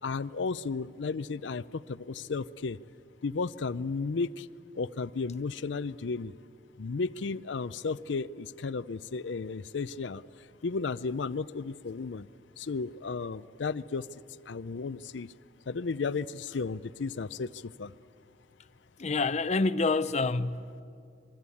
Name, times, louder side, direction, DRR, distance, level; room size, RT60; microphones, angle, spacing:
voice 1, 0.0-2.8 3.2-4.5 4.8-6.3 6.8-10.2 10.6-12.3 12.6-14.1 14.5-15.3 15.7-17.9, left 4 dB, 90° left, 0.5 m, -34 dB
voice 2, 19.0-20.8, left 3 dB, 40° left, 0.6 m, -27 dB
26.5 x 21.5 x 8.5 m
head